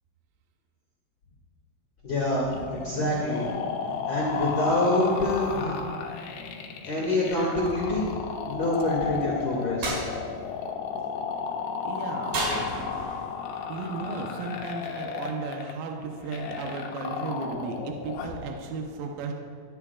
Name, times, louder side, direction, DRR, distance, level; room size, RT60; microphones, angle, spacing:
voice 1, 2.0-3.5 4.1-5.7 6.8-8.2 8.4-10.1, left 1 dB, 40° left, -6 dB, 1.8 m, -26 dB
sound 1, 2.5-18.4, left 6 dB, 75° left, 2.6 m, -33 dB
sound 2, 9.8-10.0 12.3-13.3, right 2 dB, 55° right, 5.1 m, -30 dB
voice 2, 11.8-12.4 13.5-19.3, right 4 dB, 80° right, 2 dB, 2.1 m, -35 dB
23.5 x 9.6 x 2.4 m, 2.2 s
omnidirectional pair, 5.4 m